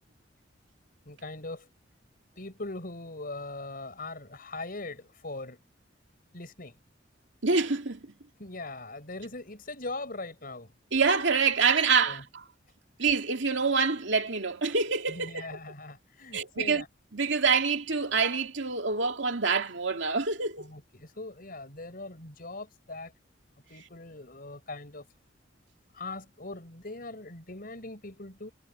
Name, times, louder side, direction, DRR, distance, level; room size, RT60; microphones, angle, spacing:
voice 1, 1.1-1.7 2.4-5.6 6.3-6.8 8.4-10.7 12.0-12.2 15.1-16.9 20.6-23.1 23.7-25.1 25.9-28.5, left 2 dB, 50° left, 6.1 m, -40 dB
voice 2, 7.4-8.1 10.9-12.2 13.0-15.6 16.3-16.8 17.1-20.6, right 5 dB, 70° right, 2.5 m, -26 dB
head